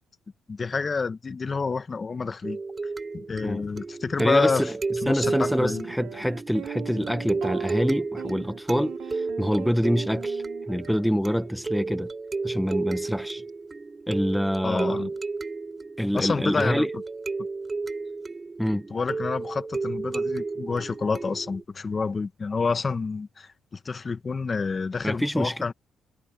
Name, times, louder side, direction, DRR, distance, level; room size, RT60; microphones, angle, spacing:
voice 1, 0.5-2.6 3.1-4.7 5.0-5.9 14.6-15.1 16.1-16.9 18.7-25.7, left 4 dB, 35° left, 1.2 m, -28 dB
sound 1, 2.4-21.6, right 3 dB, 25° right, 4.0 m, -33 dB
voice 2, 4.2-4.8 5.1-12.1 12.4-13.4 14.1-15.0 16.0-16.9 18.6-18.8 25.0-25.7, equal, ahead, 0.8 m, -26 dB
sound 2, 4.4-4.5 5.2-11.6, right 12 dB, 85° right, 5.1 m, -40 dB
cardioid pair, 90°, 0 cm